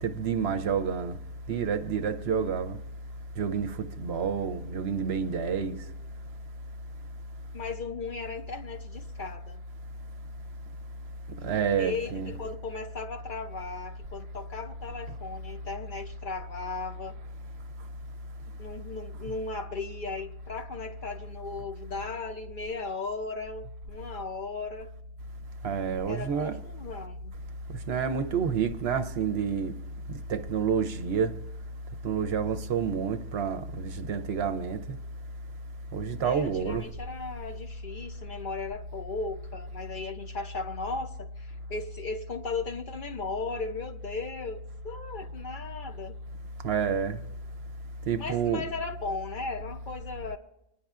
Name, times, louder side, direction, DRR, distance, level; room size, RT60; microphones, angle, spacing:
voice 1, 0.0-1.2 1.5-2.8 3.4-5.8 11.4-12.3 25.6-26.6 27.9-29.7 30.3-31.4 32.0-35.0 35.9-36.9 46.6-47.2 48.1-48.6, right 6 dB, 65° right, 0.8 m, -29 dB
voice 2, 7.5-9.6 11.8-17.2 18.6-24.9 26.1-27.3 36.2-46.2 48.2-50.4, left 3 dB, 55° left, 0.6 m, -36 dB
26.0 x 10.0 x 2.4 m
omnidirectional pair, 1.2 m